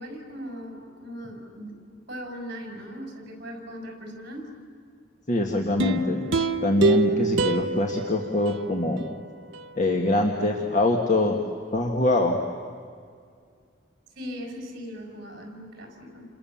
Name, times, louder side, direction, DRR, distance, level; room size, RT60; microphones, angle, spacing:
voice 1, 0.0-4.5 14.2-16.3, equal, 55° right, 2 dB, 5.9 m, -39 dB
voice 2, 5.3-6.3 6.6-9.0 9.8-11.4 11.7-12.4, left 1 dB, 40° left, 2 dB, 1.7 m, -24 dB
sound 1, 5.8-9.1 9.5-9.6, right 2 dB, 90° right, 0.9 m, -26 dB
29.5 x 27.5 x 7.2 m, 2.1 s
head